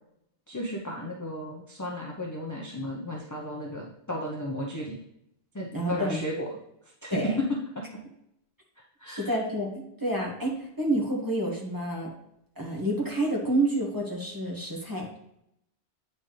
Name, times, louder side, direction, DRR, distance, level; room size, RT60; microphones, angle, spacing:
voice 1, 0.5-5.0 5.5-6.5 7.0-7.3 9.0-9.3, equal, 20° left, -2 dB, 0.7 m, -34 dB
voice 2, 5.7-6.2 7.1-7.4 9.1-12.1 12.6-15.1, right 1 dB, 20° right, -2 dB, 1.5 m, -29 dB
8.8 x 4.4 x 3.2 m, 0.78 s
omnidirectional pair, 1.2 m